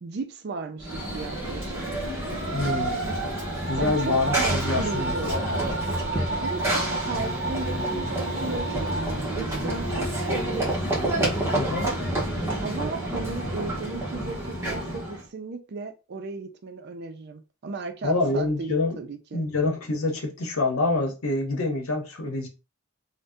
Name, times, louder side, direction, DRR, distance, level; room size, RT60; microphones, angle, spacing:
voice 1, 0.0-2.0 3.8-5.4 6.4-6.8 7.1-8.8 9.3-10.8 12.6-19.5, right 3 dB, 50° right, 0.4 m, -35 dB
Run / Train, 0.8-15.2, right 1 dB, 10° right, 0.8 m, -28 dB
voice 2, 2.5-3.1 3.7-5.6 11.5-11.9 18.0-19.0 19.3-22.5, left 2 dB, 85° left, 0.8 m, -26 dB
2.6 x 2.1 x 3.4 m
head